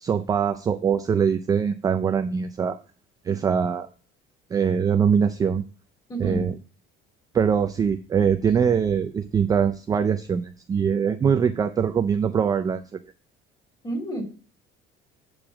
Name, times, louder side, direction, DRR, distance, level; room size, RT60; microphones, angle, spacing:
voice 1, 0.0-2.8 3.3-3.9 4.5-5.6 6.2-6.6 7.3-13.0, right 7 dB, 15° right, 8 dB, 0.4 m, -23 dB
voice 2, 6.1-6.4 13.8-14.2, right 1 dB, 20° left, 1 dB, 2.7 m, -29 dB
8.8 x 4.9 x 6.1 m, 0.37 s
cardioid pair, 180°, 21 cm